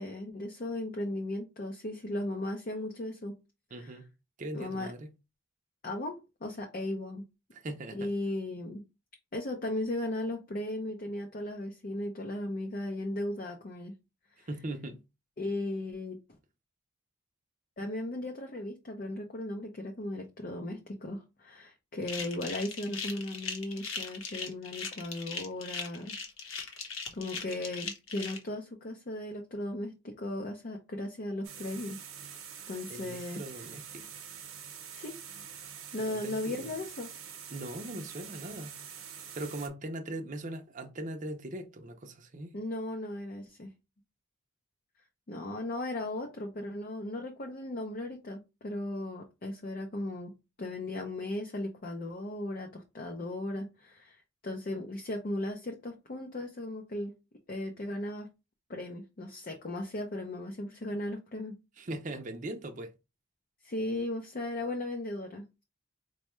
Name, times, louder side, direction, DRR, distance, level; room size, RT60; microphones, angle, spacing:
voice 1, 0.0-3.4 3.7-3.9 4.5-4.9 5.8-7.2 7.9-8.8 9.3-13.9 14.4-14.5 15.4-16.2 17.8-26.2 26.4-26.6 27.1-32.0 32.7-33.4 34.9-35.2 35.9-37.1 42.5-43.7 45.3-50.3 50.6-57.1 57.5-58.3 58.7-61.6 63.6-65.6, left 1 dB, 40° left, 0.5 m, -36 dB
voice 2, 3.7-4.1 4.4-5.1 7.5-8.1 14.5-15.0 32.9-34.2 36.0-36.8 37.5-38.8 39.3-42.5 61.8-62.9, right 1 dB, 35° right, 0.5 m, -40 dB
sound 1, 22.0-28.4, left 5 dB, 75° left, 0.9 m, -39 dB
sound 2, 31.4-39.7, right 8 dB, 80° right, 0.8 m, -46 dB
4.3 x 2.2 x 3.0 m
head